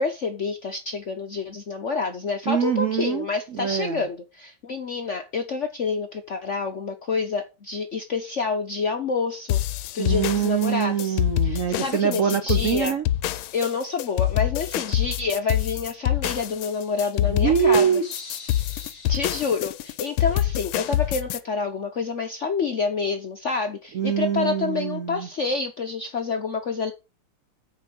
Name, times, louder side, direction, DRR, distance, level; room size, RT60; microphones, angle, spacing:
voice 1, 0.0-9.6 9.9-12.9 13.5-17.9 19.1-26.9, left 4 dB, 60° left, 0.7 m, -28 dB
voice 2, 2.5-3.3 3.5-4.0 10.0-13.0 17.2-19.1 23.9-25.3, right 8 dB, 75° right, 0.7 m, -24 dB
sound 1, 9.5-21.4, left 13 dB, 75° left, 1.4 m, -26 dB
9.4 x 4.5 x 5.9 m
omnidirectional pair, 2.3 m